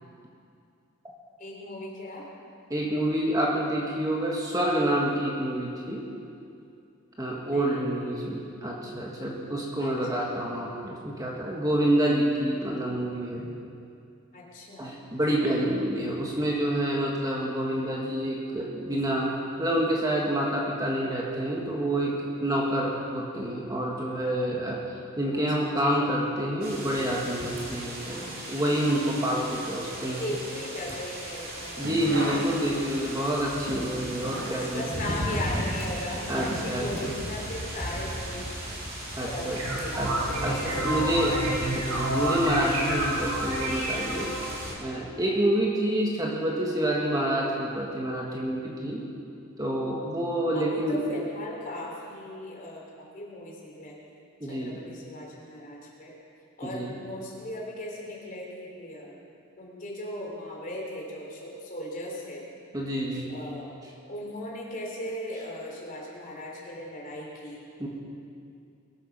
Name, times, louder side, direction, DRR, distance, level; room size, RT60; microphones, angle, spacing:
voice 1, 1.4-2.3 7.5-8.7 9.8-10.3 14.3-14.9 25.3-25.4 28.1-28.3 29.4-31.8 32.6-33.2 34.5-38.5 39.2-41.8 50.5-54.0 54.4-56.2 56.6-59.1 59.6-62.4 63.3-63.7 64.1-67.6, left 1 dB, 40° left, -3 dB, 3.4 m, -38 dB
voice 2, 2.7-6.1 7.2-13.5 14.8-19.3 19.6-24.8 25.2-30.4 31.8-35.0 36.3-36.9 39.2-39.6 40.0-40.1 40.4-41.4 41.7-44.3 44.8-49.1 49.6-51.0 54.4-54.8 56.6-56.9 62.7-63.3 67.8-67.9, right 1 dB, 15° right, -3 dB, 1.6 m, -28 dB
sound 1, 26.6-44.7, right 1 dB, 45° right, 3.4 m, -37 dB
sound 2, 31.6-33.1 33.5-37.6 37.8-37.9, equal, 70° right, 3.4 m, -36 dB
sound 3, 39.3-44.5, right 1 dB, 90° right, 4.3 m, -30 dB
22.0 x 9.1 x 6.0 m, 2.5 s
head